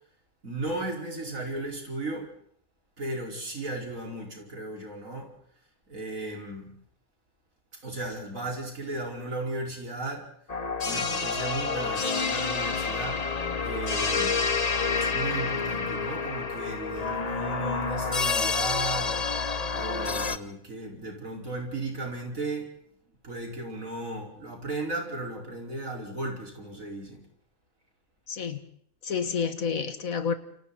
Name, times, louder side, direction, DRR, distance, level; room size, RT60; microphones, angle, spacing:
voice 1, 0.4-2.3 3.0-5.3 5.9-6.7 7.8-10.3 10.8-13.2 13.6-14.7 15.0-19.2 19.7-22.7 23.2-27.2, right 2 dB, 65° right, 5.6 m, -35 dB
sound 1, 10.5-20.4, left 4 dB, 30° left, 1.0 m, -28 dB
voice 2, 28.3-28.6 29.0-30.3, left 6 dB, 70° left, 2.1 m, -29 dB
30.0 x 28.5 x 4.2 m
omnidirectional pair, 1.5 m